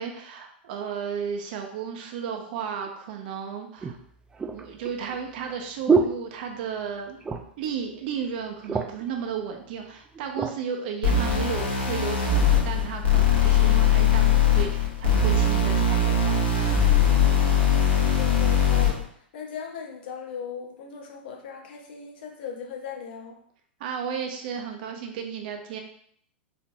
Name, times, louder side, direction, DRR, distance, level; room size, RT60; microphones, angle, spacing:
voice 1, 0.0-4.0 4.5-7.2 7.6-16.9 18.0-18.2 23.8-25.8, right 7 dB, 55° right, 3 dB, 0.6 m, -34 dB
sound 1, 2.9-3.0 3.8-6.9 7.2-7.7 8.0-8.1 8.4-9.1 9.8-10.6 11.2-11.4, right 4 dB, 15° right, 0.3 m, -28 dB
sound 2, 11.0-19.0, left 5 dB, 85° left, 1.0 m, -21 dB
voice 2, 18.0-19.0 19.3-23.3, left 6 dB, 65° left, 2 dB, 0.8 m, -38 dB
4.2 x 2.8 x 2.3 m, 0.64 s
hypercardioid pair, 110°, 6 cm